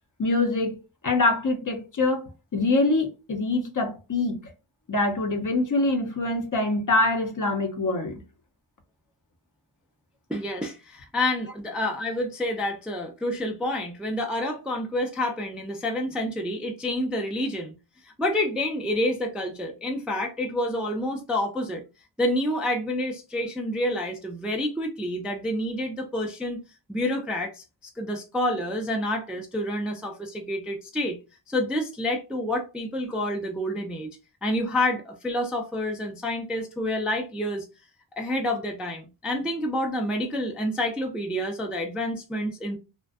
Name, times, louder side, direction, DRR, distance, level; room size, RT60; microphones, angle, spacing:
voice 1, 0.2-0.8 1.0-4.5 4.9-8.2, left 2 dB, 40° left, 0.6 m, -24 dB
voice 2, 10.3-17.7 18.0-21.8 22.2-26.6 26.9-27.6 28.0-31.2 31.5-34.1 34.4-37.7 38.2-42.8, left 1 dB, ahead, 0.3 m, -28 dB
2.4 x 2.1 x 2.3 m
wide cardioid pair, 60°, 49 cm